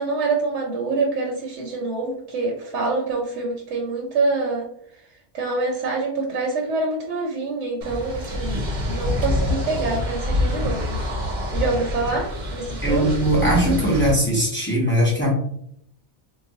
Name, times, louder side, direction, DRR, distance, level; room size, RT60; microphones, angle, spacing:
voice 1, 0.0-4.7 5.3-13.1, right 3 dB, 85° right, -1 dB, 1.0 m, -26 dB
sound 1, 7.8-14.1, left 1 dB, 45° right, 0.8 m, -26 dB
voice 2, 12.8-15.3, right 1 dB, 10° left, -4 dB, 0.7 m, -20 dB
3.9 x 2.2 x 2.7 m, 0.70 s
omnidirectional pair, 1.2 m